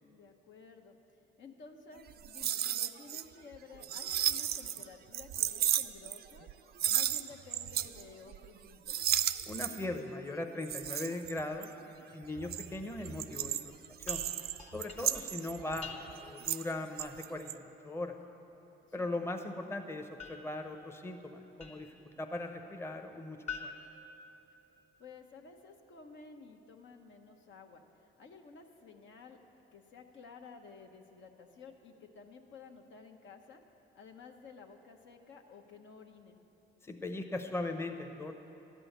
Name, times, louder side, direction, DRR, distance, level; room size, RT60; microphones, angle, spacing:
voice 1, 0.0-1.0 1.4-6.5 6.8-9.1 19.0-19.1 25.0-29.4 29.7-33.6 33.9-36.4, left 5 dB, 70° left, 4 dB, 1.0 m, -53 dB
sound 1, 2.1-3.2 3.5-4.8 5.1-6.5 6.8-8.0 8.3-8.6 8.9-10.0 10.6-11.8 12.3-16.7 17.0-17.5, right 11 dB, 55° right, 0.4 m, -34 dB
voice 2, 9.5-11.7 12.1-13.6 14.1-14.2 14.7-18.2 18.9-23.7 36.8-38.3, left 2 dB, 10° left, 5 dB, 0.7 m, -39 dB
sound 2, 14.1-16.5 20.2-22.1 23.5-24.9, left 5 dB, 35° left, 1.5 m, -48 dB
12.5 x 6.2 x 9.2 m, 3.0 s
cardioid pair, 90°, 20 cm